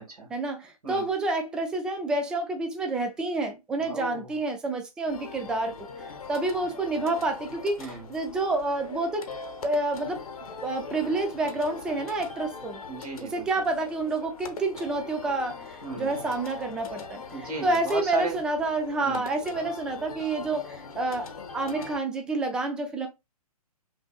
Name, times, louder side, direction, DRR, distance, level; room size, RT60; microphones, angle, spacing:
voice 1, 0.3-5.8 6.0-9.3 9.6-10.2 10.6-12.8 13.3-17.2 17.6-23.1, right 2 dB, 5° right, 0.3 m, -29 dB
voice 2, 3.8-4.3 7.8-8.1 12.9-13.7 15.8-16.3 17.3-18.4 19.0-19.2, right 4 dB, 65° right, 2.0 m, -35 dB
sound 1, 5.1-22.0, left 4 dB, 65° left, 0.9 m, -42 dB
5.5 x 2.5 x 2.3 m
figure-of-eight pair, 125°, 20 cm